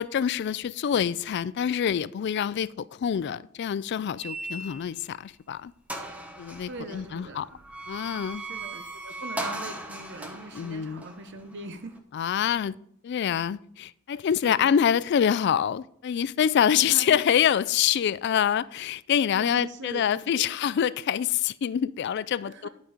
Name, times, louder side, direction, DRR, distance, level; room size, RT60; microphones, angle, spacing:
voice 1, 0.0-5.7 6.4-7.5 7.9-8.4 10.5-11.0 12.1-12.7 13.0-22.7, left 8 dB, 50° left, 0.3 m, -26 dB
sound 1, 4.2-5.1 5.5-5.6 5.9-12.0, right 2 dB, 5° right, 0.9 m, -38 dB
voice 2, 6.7-7.7 8.4-12.0 14.4-14.8 16.9-17.3 19.3-20.6 22.4-22.7, right 2 dB, 55° right, 0.8 m, -41 dB
11.5 x 5.2 x 4.9 m
head